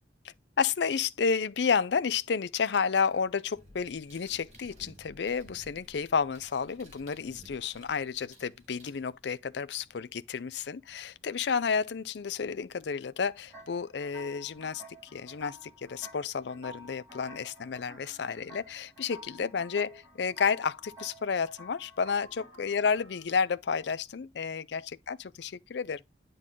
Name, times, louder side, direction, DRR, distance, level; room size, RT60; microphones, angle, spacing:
voice 1, 0.6-14.8 15.1-26.0, left 6 dB, 70° left, 0.5 m, -31 dB
sound 1, 3.5-9.5 12.0-12.1 13.5-13.7 14.1-15.0, right 1 dB, 35° right, 2.1 m, -56 dB
sound 2, 13.5-23.4, left 1 dB, 20° right, 4.0 m, -51 dB
9.1 x 4.0 x 3.7 m
head